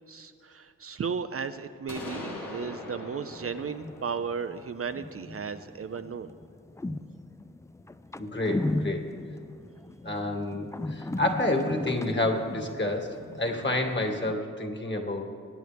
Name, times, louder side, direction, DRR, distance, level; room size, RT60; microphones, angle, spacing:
voice 1, 0.1-6.3, right 6 dB, 45° right, 9 dB, 0.6 m, -35 dB
sound 1, 1.9-5.7, left 2 dB, 70° left, 2.0 m, -42 dB
sound 2, 3.3-14.3, left 2 dB, 10° left, 0.4 m, -37 dB
voice 2, 8.2-9.0 10.0-15.3, left 2 dB, 35° left, 3 dB, 2.0 m, -29 dB
21.5 x 9.1 x 3.5 m, 2.4 s
cardioid pair, 45°, 33 cm